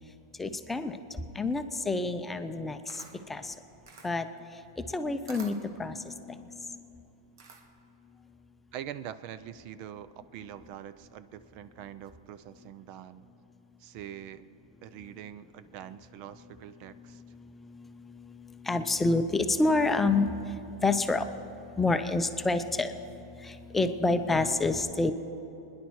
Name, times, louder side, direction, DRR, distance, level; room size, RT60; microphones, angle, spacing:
voice 1, 0.4-1.0 1.3-3.5 4.0-4.3 4.9-6.6 17.7-17.9 18.2-21.3 21.8-25.1, left 3 dB, 10° left, 8 dB, 0.6 m, -28 dB
Camera, 2.5-7.9, right 5 dB, 80° right, 1.7 m, -52 dB
voice 2, 8.7-13.3 13.8-14.4 14.8-17.2, right 10 dB, 45° right, 14 dB, 0.5 m, -44 dB
22.5 x 10.5 x 4.7 m, 2.8 s
supercardioid pair, 145°, 2 cm